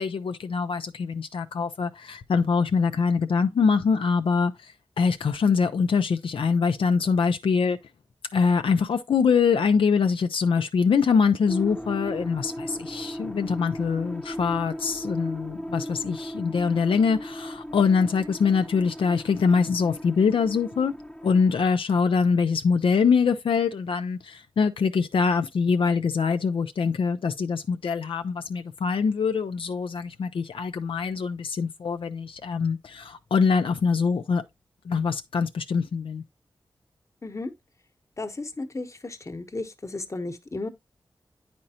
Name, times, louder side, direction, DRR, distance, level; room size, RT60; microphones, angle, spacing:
voice 1, 0.0-4.5 5.0-7.8 8.3-20.9 21.2-34.4 34.9-36.2, left 5 dB, 85° left, 0.5 m, -24 dB
sound 1, 11.5-21.6, equal, 10° left, 0.8 m, -37 dB
voice 2, 38.2-40.7, left 2 dB, 35° left, 1.0 m, -34 dB
8.8 x 5.2 x 2.8 m
wide cardioid pair, 80°, 9 cm